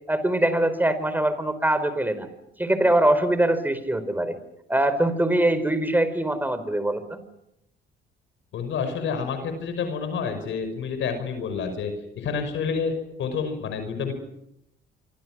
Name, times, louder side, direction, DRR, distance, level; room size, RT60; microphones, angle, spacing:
voice 1, 0.1-2.3 2.6-4.4 4.7-7.2, right 1 dB, 10° right, 11 dB, 4.6 m, -23 dB
voice 2, 8.5-14.1, left 5 dB, 75° left, 7 dB, 5.7 m, -29 dB
27.0 x 24.5 x 6.3 m, 0.82 s
cardioid pair, 90°, 20 cm